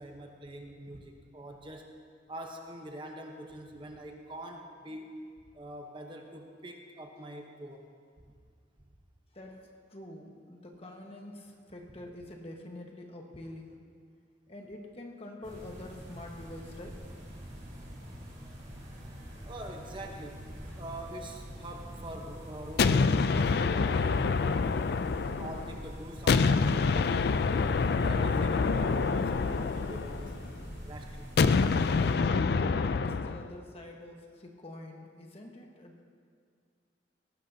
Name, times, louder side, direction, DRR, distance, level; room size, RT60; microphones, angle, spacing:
voice 1, 0.0-1.9 2.3-5.1 5.5-7.9 19.4-20.4 20.8-24.2 25.4-27.4 28.0-30.4 30.8-31.3, right 1 dB, 25° right, 2 dB, 1.0 m, -44 dB
voice 2, 9.3-13.9 14.5-17.1 18.0-18.2 32.9-36.0, left 1 dB, 30° left, 1 dB, 1.4 m, -46 dB
sound 1, 15.4-32.1, equal, 45° right, 4.4 m, -45 dB
sound 2, 22.8-25.8 26.3-30.5 31.4-33.5, left 4 dB, 60° left, 0.4 m, -26 dB
18.5 x 16.0 x 2.8 m, 2.1 s
head